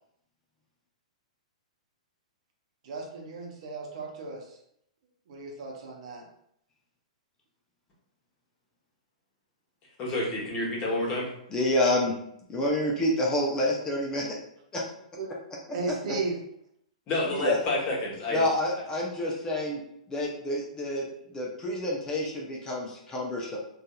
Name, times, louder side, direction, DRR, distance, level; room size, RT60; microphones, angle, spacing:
voice 1, 2.8-4.6 5.3-6.3 15.1-15.4 15.7-16.4 17.3-17.4, right 3 dB, 60° right, 0 dB, 0.7 m, -35 dB
voice 2, 10.0-11.3 17.1-18.4, left 2 dB, 35° left, -3 dB, 1.0 m, -29 dB
voice 3, 11.5-12.1 12.5-14.3 14.7-14.8 17.4-17.6 18.3-19.8 20.1-23.6, left 1 dB, 20° left, -3 dB, 0.5 m, -28 dB
2.7 x 2.4 x 2.2 m, 0.74 s
hypercardioid pair, 120°, 4 cm